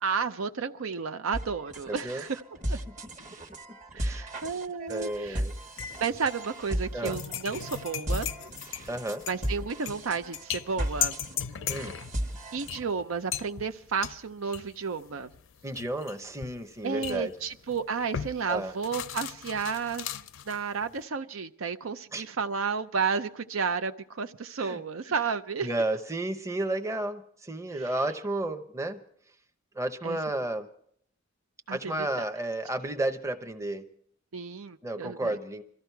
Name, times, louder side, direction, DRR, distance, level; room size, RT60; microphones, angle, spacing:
voice 1, 0.0-2.4 2.7-2.8 3.9-5.4 6.0-8.3 9.3-11.2 12.5-15.3 16.8-25.7 27.7-27.9 30.0-30.2 31.7-31.9 34.3-35.4, right 5 dB, 75° right, 10 dB, 0.6 m, -32 dB
sound 1, 1.3-12.9, right 1 dB, 35° right, 1.4 m, -36 dB
voice 2, 1.9-2.2 4.0-4.3 4.9-5.5 6.9-7.2 8.9-9.2 11.7-11.9 15.6-17.3 18.5-18.7 22.1-22.2 24.6-25.1 25.6-29.0 29.7-30.7 31.7-33.8 34.8-35.6, right 1 dB, 15° right, 7 dB, 0.8 m, -32 dB
sound 2, 4.9-5.4 5.8-21.0, left 9 dB, 65° left, 0.5 m, -37 dB
22.5 x 14.0 x 4.6 m, 0.68 s
head